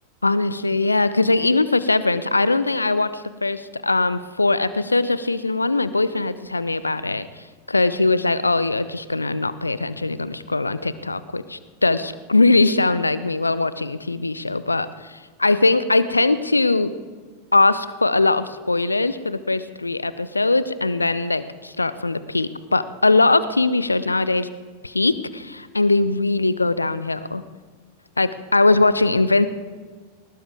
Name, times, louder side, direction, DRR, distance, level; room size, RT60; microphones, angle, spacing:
voice 1, 0.2-7.3 7.7-16.9 17.5-24.5 24.8-27.4 28.2-29.5, left 3 dB, 80° left, 15 dB, 0.7 m, -21 dB
20.0 x 19.5 x 3.6 m, 1.5 s
figure-of-eight pair, 90°, 0 cm